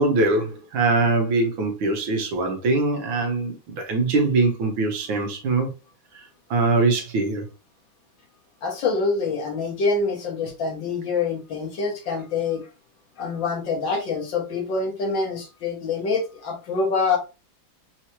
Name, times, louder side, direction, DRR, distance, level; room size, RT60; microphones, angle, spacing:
voice 1, 0.0-5.7 6.5-7.5, right 3 dB, 75° right, 1.7 m, -22 dB
voice 2, 8.6-12.7 13.2-17.2, left 4 dB, 65° left, 1.9 m, -25 dB
4.8 x 3.0 x 2.8 m
omnidirectional pair, 2.3 m